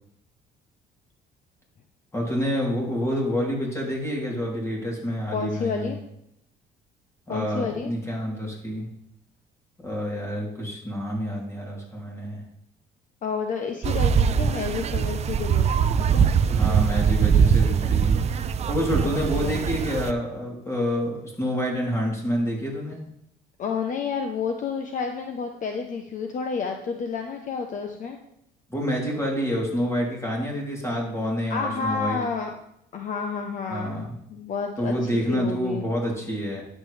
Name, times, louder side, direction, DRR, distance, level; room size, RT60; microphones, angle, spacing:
voice 1, 2.1-5.9 7.3-8.9 9.8-12.4 16.5-18.4 18.7-23.0 28.7-32.2 33.7-34.1 34.8-36.6, equal, 15° left, -2 dB, 3.3 m, -28 dB
voice 2, 5.3-6.0 7.3-7.9 13.2-15.8 16.1-16.3 19.0-19.1 19.4-19.7 23.6-28.2 31.5-32.5 32.9-34.9 35.3-35.8, left 5 dB, 50° left, 4 dB, 0.9 m, -30 dB
sound 1, 13.8-20.1, right 7 dB, 40° right, 0.5 m, -22 dB
10.5 x 7.5 x 3.3 m, 0.76 s
cardioid pair, 110°, 17 cm